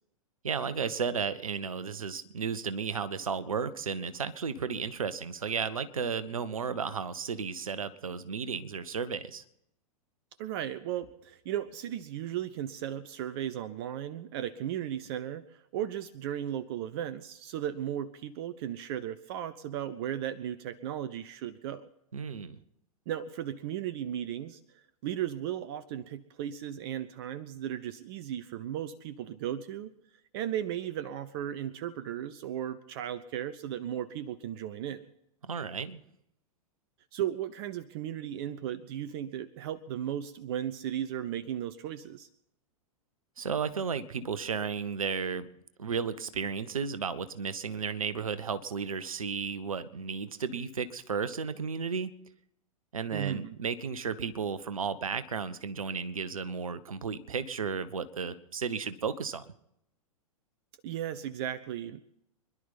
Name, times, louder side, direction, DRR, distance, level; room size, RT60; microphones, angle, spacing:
voice 1, 0.4-9.4 22.1-22.6 35.4-36.0 43.4-45.5 45.8-52.1 52.9-59.5, right 6 dB, 70° right, 14 dB, 1.1 m, -33 dB
voice 2, 10.4-21.9 23.1-24.6 25.0-29.9 30.3-35.0 37.1-42.3 53.1-53.5 60.8-62.0, right 10 dB, 45° right, 15 dB, 0.8 m, -36 dB
25.5 x 11.5 x 4.1 m, 0.78 s
figure-of-eight pair, 100°, 18 cm